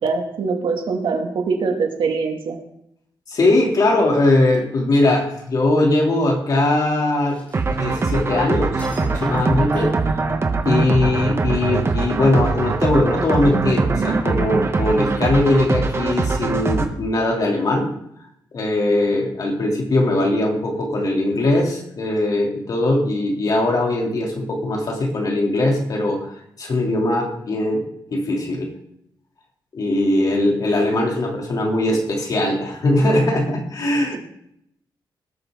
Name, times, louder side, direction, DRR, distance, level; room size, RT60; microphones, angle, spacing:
voice 1, 0.0-2.6 14.0-14.2, right 4 dB, 75° right, 2 dB, 2.6 m, -23 dB
voice 2, 3.3-7.4 7.7-9.9 10.6-17.9 18.5-27.8 28.1-28.7 29.7-34.2, left 2 dB, 45° left, 0 dB, 3.2 m, -20 dB
sound 1, 7.2-8.4 8.8-10.6, equal, 20° left, 7.1 m, -43 dB
sound 2, 7.5-16.9, right 3 dB, 30° right, 1.3 m, -22 dB
19.5 x 13.0 x 3.9 m, 0.75 s
wide cardioid pair, 175°, 8 cm